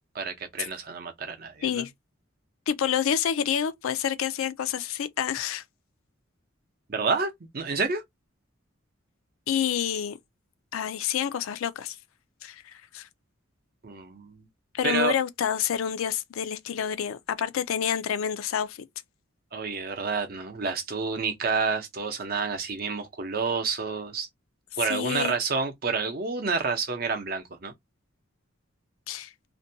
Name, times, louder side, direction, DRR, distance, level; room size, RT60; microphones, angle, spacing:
voice 1, 0.1-1.8 6.9-8.0 13.8-14.4 14.8-15.1 19.5-24.3 24.8-27.7, right 4 dB, 45° right, 0.6 m, -29 dB
voice 2, 2.7-5.6 9.5-10.2 10.7-12.0 12.4-13.1 14.7-18.9 24.8-25.3 29.1-29.3, left 8 dB, 80° left, 0.4 m, -28 dB
2.5 x 2.2 x 2.6 m
head